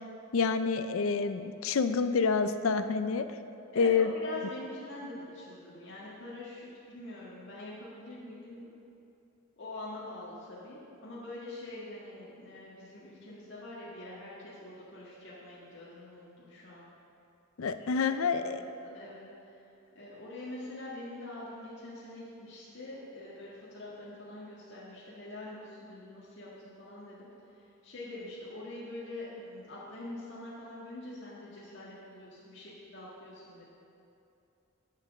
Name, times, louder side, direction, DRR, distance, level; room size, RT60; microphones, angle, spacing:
voice 1, 0.3-3.3 3.8-4.1 17.6-18.6, left 5 dB, 80° left, 10 dB, 0.5 m, -28 dB
voice 2, 3.7-8.7 9.6-16.9 17.8-18.0 18.3-18.5 18.8-19.2 19.5-19.7 19.9-27.3 27.8-33.6, left 2 dB, 60° left, -9 dB, 1.8 m, -44 dB
11.0 x 5.2 x 7.3 m, 2.7 s
head